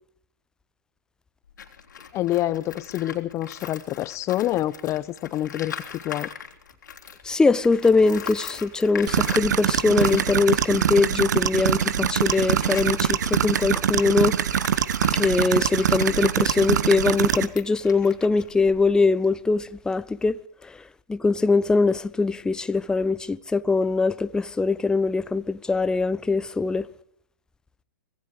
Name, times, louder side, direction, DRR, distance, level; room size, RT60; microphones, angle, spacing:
Tools, 1.5-7.3 7.6-19.1, left 7 dB, 75° left, 3.4 m, -41 dB
voice 1, 2.1-6.3, left 14 dB, 30° left, 1.3 m, -27 dB
voice 2, 7.2-14.4 15.1-20.8 21.1-26.9, left 3 dB, 5° left, 0.8 m, -22 dB
sound 1, 9.1-17.5, right 9 dB, 65° right, 1.4 m, -24 dB
25.5 x 20.0 x 5.1 m
figure-of-eight pair, 110°, 10 cm